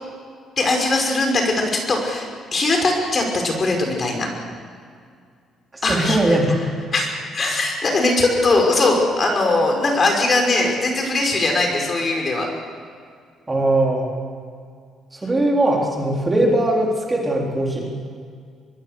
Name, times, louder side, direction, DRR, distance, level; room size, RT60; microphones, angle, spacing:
voice 1, 0.6-2.3 2.5-4.3 5.8-12.5, left 2 dB, 35° left, 2 dB, 5.7 m, -20 dB
voice 2, 5.9-6.5 13.5-14.1 15.2-17.9, right 1 dB, 20° right, -1 dB, 4.0 m, -20 dB
24.0 x 23.0 x 6.8 m, 2.1 s
cardioid pair, 125°, 0 cm